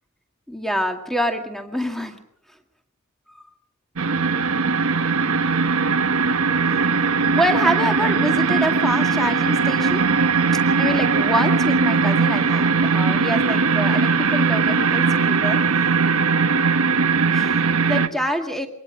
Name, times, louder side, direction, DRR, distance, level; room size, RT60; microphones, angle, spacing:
voice 1, 0.5-2.2 7.3-10.1 10.8-15.6 17.3-18.7, equal, ahead, 4 dB, 2.0 m, -26 dB
sound 1, 4.0-18.1, right 4 dB, 80° right, 1.1 m, -19 dB
24.5 x 19.5 x 6.4 m, 0.72 s
head